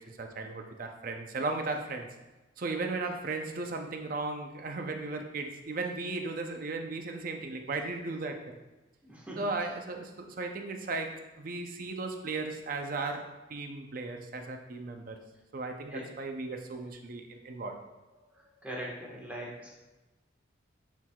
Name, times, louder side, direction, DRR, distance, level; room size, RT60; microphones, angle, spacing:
voice 1, 0.0-2.1 2.6-8.6 9.4-15.2 15.5-17.8, right 3 dB, 45° right, 5 dB, 0.5 m, -36 dB
voice 2, 9.0-9.4 15.9-16.0 18.6-19.7, equal, 10° right, -4 dB, 1.3 m, -40 dB
9.3 x 4.6 x 2.3 m, 1.1 s
head